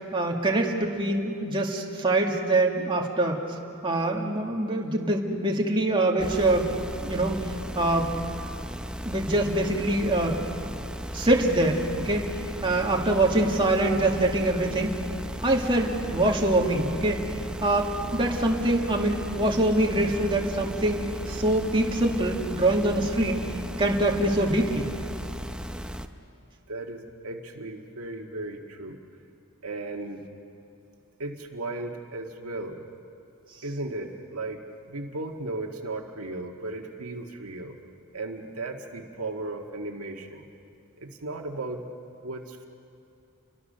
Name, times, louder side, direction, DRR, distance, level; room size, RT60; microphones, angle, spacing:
voice 1, 0.1-3.4 3.8-6.7 7.0-7.4 7.8-8.2 9.1-10.4 11.1-12.3 12.6-15.0 15.4-17.2 17.6-23.5 23.8-24.9, right 1 dB, 25° right, -1 dB, 2.1 m, -24 dB
sound 1, 6.2-26.1, equal, 5° right, 0.8 m, -36 dB
voice 2, 26.7-29.0 29.6-30.2 31.2-32.8 33.6-37.7 38.1-40.5 41.0-41.9 42.2-42.7, right 2 dB, 75° right, 2 dB, 1.8 m, -36 dB
29.5 x 23.5 x 6.7 m, 2.6 s
head